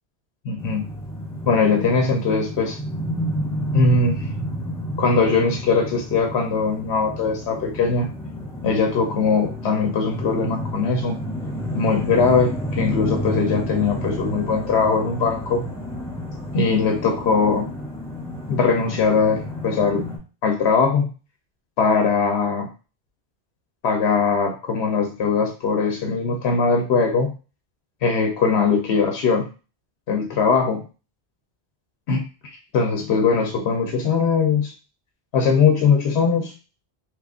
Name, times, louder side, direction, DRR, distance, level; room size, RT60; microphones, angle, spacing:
voice 1, 0.4-0.8 1.4-2.8 3.7-4.3 5.0-8.1 8.6-11.2 11.7-15.6 16.5-17.7 18.5-20.1 20.4-21.1 21.8-22.7 23.8-27.3 28.0-29.4 30.1-30.8 32.1-32.2 32.7-34.7 35.3-36.5, left 5 dB, 90° left, 2 dB, 0.9 m, -20 dB
sound 1, 0.6-20.2, equal, 5° left, 0.8 m, -30 dB
3.1 x 2.4 x 3.5 m, 0.34 s
omnidirectional pair, 1.1 m